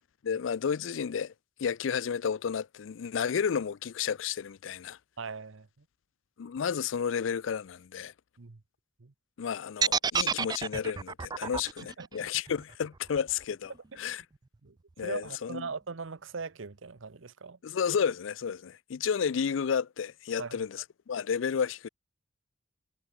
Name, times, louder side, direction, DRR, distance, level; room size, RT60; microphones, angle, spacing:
voice 1, 0.2-1.3 1.6-5.0 6.4-8.1 9.4-13.7 14.0-14.2 15.0-15.7 17.6-21.9, left 7 dB, 75° left, 0.4 m, -31 dB
voice 2, 5.2-5.8 8.4-8.6 9.0-9.1 11.4-11.5 12.0-12.3 14.6-14.8 15.0-17.6 20.4-20.6, right 4 dB, 80° right, 0.9 m, -40 dB
sound 1, 9.8-13.9, right 6 dB, 20° right, 0.3 m, -30 dB
head